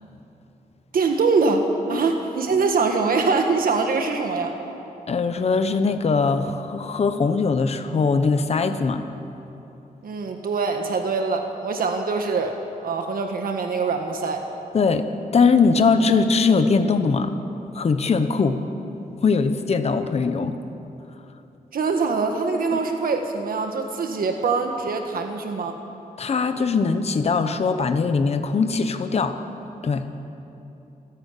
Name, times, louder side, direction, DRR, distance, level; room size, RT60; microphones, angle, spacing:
voice 1, 0.9-4.5 10.0-12.6 12.8-14.4 21.7-25.8, right 4 dB, 80° right, 4 dB, 1.5 m, -23 dB
voice 2, 5.1-9.0 14.7-15.0 15.3-17.3 17.7-18.6 19.2-20.5 26.2-29.4 29.8-30.1, left 4 dB, 45° left, 8 dB, 1.0 m, -21 dB
27.0 x 11.5 x 8.4 m, 2.9 s
wide cardioid pair, 170°, 15 cm